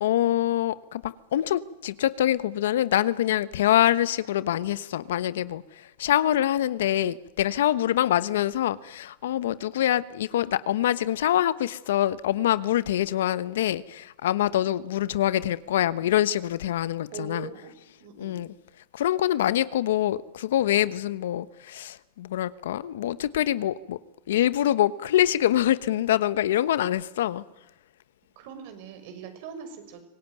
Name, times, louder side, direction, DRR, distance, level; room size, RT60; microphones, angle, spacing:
voice 1, 0.0-17.5 18.2-18.5 18.9-24.0 24.3-27.4, left 12 dB, 80° left, 1.1 m, -25 dB
voice 2, 17.1-17.7 18.0-18.4 28.4-30.0, right 7 dB, 60° right, 6.2 m, -41 dB
25.0 x 19.0 x 9.3 m
supercardioid pair, 130°, 0 cm